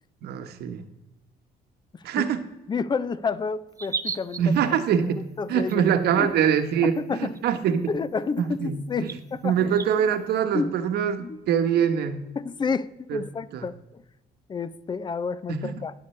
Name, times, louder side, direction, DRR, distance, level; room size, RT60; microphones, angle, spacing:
voice 1, 0.2-0.8 2.0-2.4 4.4-5.2 5.5-7.9 8.4-9.1 9.4-12.2 13.1-13.2 13.5-13.6 15.5-15.8, right 8 dB, 70° right, 8 dB, 1.2 m, -24 dB
voice 2, 2.7-4.4 5.1-5.8 6.2-6.3 7.0-7.3 7.9-9.5 10.5-10.7 11.2-11.4 12.4-14.0 14.5-15.9, left 5 dB, 25° left, 16 dB, 0.6 m, -30 dB
sound 1, 3.8-4.6 5.7-5.8 6.9-7.0 7.3-7.4 8.4-8.5 9.1-9.2 9.8-9.9, right 4 dB, 20° right, 0.5 m, -32 dB
19.5 x 6.8 x 3.2 m, 0.97 s
cardioid pair, 110°, 17 cm